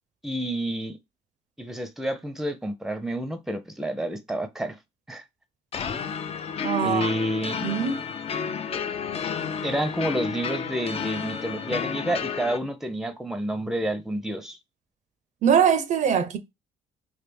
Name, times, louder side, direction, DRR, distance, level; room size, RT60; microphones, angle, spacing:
voice 1, 0.2-1.0 1.6-4.8 5.1-5.2 6.8-7.6 9.6-14.6, right 1 dB, 5° right, 0.6 m, -29 dB
sound 1, 5.7-12.6, left 6 dB, 45° left, 0.5 m, -31 dB
voice 2, 6.6-7.1 7.6-8.0 15.4-16.4, right 7 dB, 55° right, 0.5 m, -22 dB
3.3 x 2.3 x 3.4 m
supercardioid pair, 75°, 15 cm